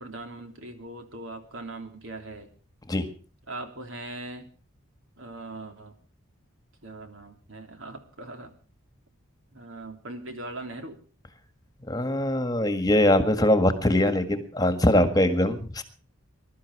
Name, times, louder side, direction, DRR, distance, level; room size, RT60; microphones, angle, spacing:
voice 1, 0.0-2.5 3.5-4.5 5.2-6.0 6.8-8.5 9.5-11.0, right 2 dB, 65° right, 5 dB, 3.3 m, -40 dB
voice 2, 11.9-15.8, left 1 dB, 20° left, 9 dB, 1.7 m, -22 dB
21.5 x 12.5 x 4.8 m, 0.39 s
head